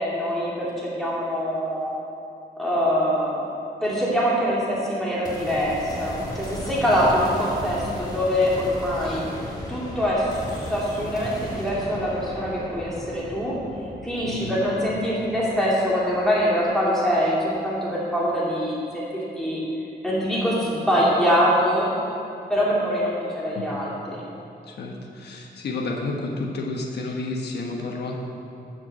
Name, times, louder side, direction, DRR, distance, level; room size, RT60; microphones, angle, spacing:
voice 1, 0.0-1.9 2.6-3.4 3.8-9.2 9.7-13.5 14.0-19.0 19.4-19.6 20.0-21.9 22.5-24.2, equal, ahead, -8 dB, 2.6 m, -24 dB
sound 1, 5.2-16.6, left 1 dB, 25° left, 1.5 m, -36 dB
voice 2, 14.2-14.5 23.5-23.7 24.7-28.1, left 3 dB, 80° left, 0 dB, 1.2 m, -31 dB
13.0 x 4.6 x 8.0 m, 2.7 s
wide cardioid pair, 175°, 17 cm